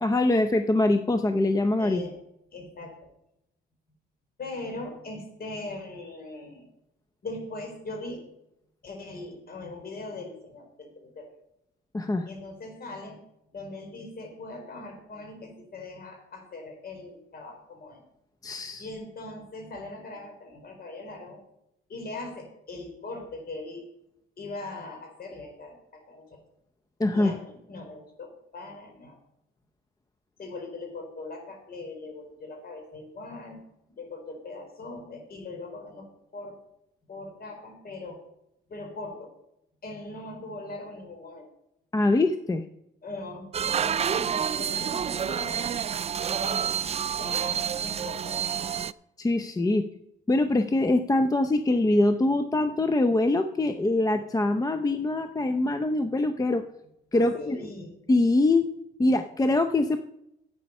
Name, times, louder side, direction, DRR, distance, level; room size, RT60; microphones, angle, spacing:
voice 1, 0.0-2.0 11.9-12.3 18.4-18.9 27.0-27.3 41.9-42.6 49.2-49.8 50.3-56.6 57.1-57.6 58.1-58.7 59.0-60.0, left 2 dB, 20° left, 9 dB, 0.6 m, -23 dB
voice 2, 1.8-2.2 2.5-3.1 4.4-6.7 7.2-8.2 8.8-11.3 12.3-13.2 13.5-18.0 18.8-21.4 21.9-23.9 24.4-26.4 27.1-29.2 30.4-33.6 34.0-36.1 36.3-36.6 37.1-38.2 38.7-39.3 39.8-41.5 43.0-45.7 46.4-46.9 47.2-48.6 57.1-57.9, left 2 dB, 50° left, 3 dB, 4.1 m, -40 dB
sound 1, 43.5-48.9, right 8 dB, 30° right, 0.3 m, -28 dB
11.0 x 8.4 x 5.5 m, 0.83 s
cardioid pair, 90°, 20 cm